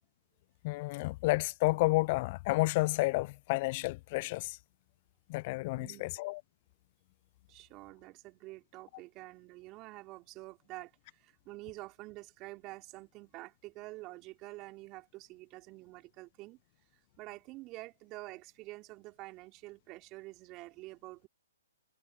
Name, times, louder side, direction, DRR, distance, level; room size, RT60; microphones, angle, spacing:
voice 1, 0.6-4.6 5.3-6.4, left 22 dB, 40° left, 0.4 m, -30 dB
voice 2, 7.5-16.6 17.2-21.3, right 20 dB, 30° right, 3.7 m, -48 dB
hypercardioid pair, 130°, 0 cm